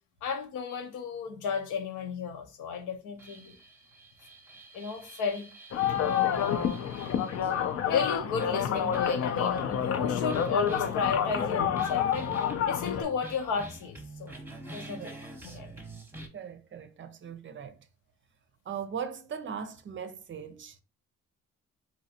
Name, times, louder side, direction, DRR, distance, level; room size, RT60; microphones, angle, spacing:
voice 1, 0.2-3.5 4.7-5.5 6.0-6.8 7.8-12.3 12.7-14.3 14.7-15.1 15.4-15.7, left 5 dB, 85° left, 0.8 m, -33 dB
sound 1, 3.2-7.7 8.4-9.2 9.5-16.3, right 2 dB, 5° right, 0.8 m, -46 dB
sound 2, 5.7-13.0, left 9 dB, 55° left, 0.5 m, -28 dB
voice 2, 14.9-15.2 16.3-17.9 18.7-20.8, right 7 dB, 40° right, 0.5 m, -39 dB
3.1 x 2.7 x 2.8 m
cardioid pair, 90°, 30 cm